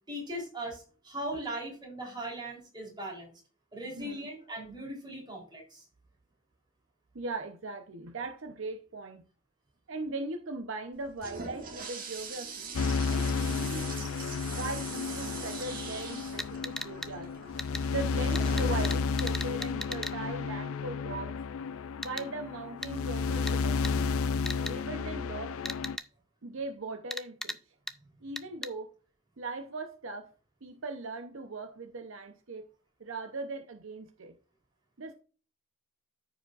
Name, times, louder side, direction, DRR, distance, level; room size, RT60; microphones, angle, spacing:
voice 1, 0.1-3.3 3.7-5.8, right 1 dB, 20° right, 3.5 m, -39 dB
voice 2, 3.9-4.3 7.1-9.2 9.9-12.7 13.1-17.3 17.9-21.4 22.0-24.0 24.6-25.6 26.4-27.6 28.2-28.9 29.4-30.3 30.6-32.7 33.0-34.3 35.0-35.1, right 3 dB, 65° right, 0.8 m, -39 dB
Toilet flush, 10.9-20.3, right 5 dB, 40° right, 1.8 m, -43 dB
sound 1, 12.7-26.0, left 5 dB, 75° left, 0.4 m, -32 dB
sound 2, 16.4-17.1 17.6-17.8 18.3-20.1 22.0-22.2 22.8-22.9 23.5-23.6 23.8-23.9 24.5-24.7 25.6-26.1 27.1-27.6 27.9-28.0 28.4-28.7, left 1 dB, ahead, 0.4 m, -37 dB
14.0 x 5.1 x 2.5 m
head